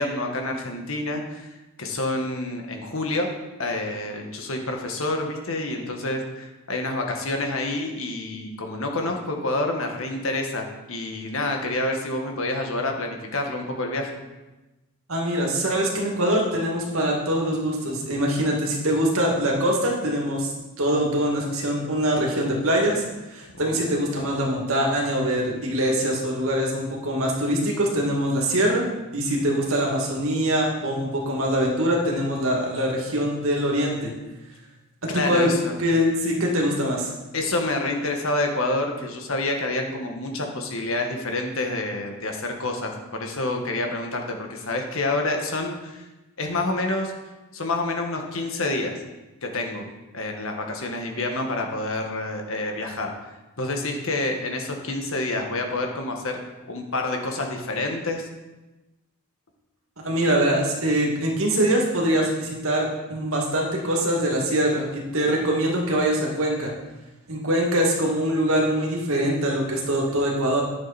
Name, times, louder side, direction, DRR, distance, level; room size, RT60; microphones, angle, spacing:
voice 1, 0.0-3.3 3.6-14.1 23.5-23.7 35.1-35.7 37.3-46.1 46.4-47.1 47.5-49.0 49.4-49.8 50.1-53.1 53.6-56.4 56.7-58.3, left 2 dB, 65° left, 2 dB, 1.6 m, -28 dB
voice 2, 15.1-20.5 20.8-23.0 23.3-28.9 29.1-34.1 35.1-35.5 35.8-37.1 60.0-66.7 67.3-70.6, right 1 dB, 70° right, -1 dB, 2.3 m, -23 dB
10.5 x 7.4 x 4.2 m, 1.1 s
head